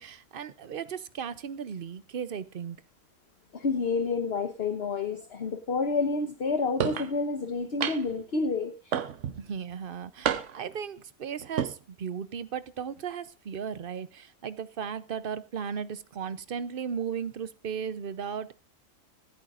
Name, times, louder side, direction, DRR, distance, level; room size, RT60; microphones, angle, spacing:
voice 1, 0.0-2.8 9.4-18.5, right 7 dB, 50° right, 0.8 m, -36 dB
voice 2, 3.5-9.0, left 4 dB, 50° left, 1.2 m, -29 dB
sound 1, 6.8-7.1 7.8-8.2 8.9-9.4 10.2-10.7 11.4-11.7, right 9 dB, 70° right, 1.2 m, -29 dB
26.0 x 9.0 x 2.5 m
omnidirectional pair, 1.4 m